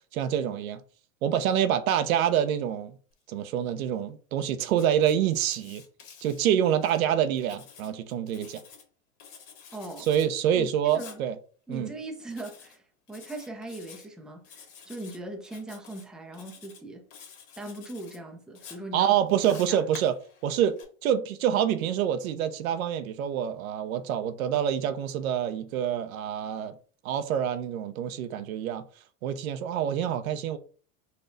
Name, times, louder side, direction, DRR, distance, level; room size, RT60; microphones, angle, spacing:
voice 1, 0.1-0.8 1.2-3.0 3.3-5.8 6.2-8.6 10.0-11.4 11.7-11.9 18.9-26.8 27.0-28.8 29.2-30.6, right 9 dB, 85° right, 0.6 m, -26 dB
Writing, 4.7-7.0 7.4-8.9 9.2-10.3 10.9-11.2 12.3-12.8 13.1-14.1 14.4-15.2 15.4-16.0 16.3-16.8 17.1-18.2 18.6-20.8, left 7 dB, 60° left, 1.5 m, -50 dB
voice 2, 9.7-10.1 10.5-11.2 11.7-12.8 13.1-14.4 14.8-17.0 17.6-19.1 19.7-19.8, right 2 dB, ahead, 0.5 m, -40 dB
4.1 x 2.3 x 3.9 m
supercardioid pair, 120°, 41 cm